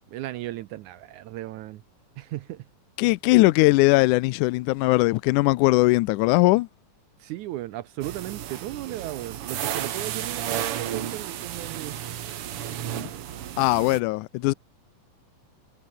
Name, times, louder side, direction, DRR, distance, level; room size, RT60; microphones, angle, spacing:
voice 1, 0.1-1.8 2.2-2.7 7.2-12.0, right 15 dB, 75° right, 1.9 m, -35 dB
voice 2, 3.0-6.7 13.0-13.1 13.6-14.5, left 21 dB, 80° left, 1.9 m, -20 dB
sound 1, 8.0-14.0, right 10 dB, 60° right, 1.6 m, -33 dB
omnidirectional pair, 4.0 m